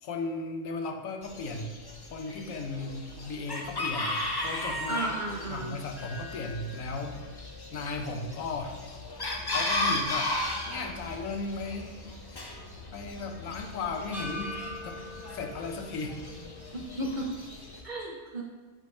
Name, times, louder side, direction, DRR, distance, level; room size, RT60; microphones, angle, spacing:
voice 1, 0.0-1.7 2.1-5.0 5.5-7.2 7.7-8.8 9.5-10.3 10.7-12.0 12.9-14.6 14.8-15.0 15.3-16.2, left 3 dB, 85° left, 5 dB, 1.1 m, -36 dB
Chicken rooster, 1.2-17.8, left 2 dB, 30° left, 0.5 m, -36 dB
voice 2, 4.9-5.8 16.7-17.3 17.8-18.4, right 2 dB, 50° right, -1 dB, 0.6 m, -33 dB
sound 1, 6.0-10.2 10.6-10.7 14.1-16.7, left 1 dB, ahead, 1.7 m, -45 dB
8.5 x 3.8 x 3.1 m, 1.4 s
omnidirectional pair, 1.4 m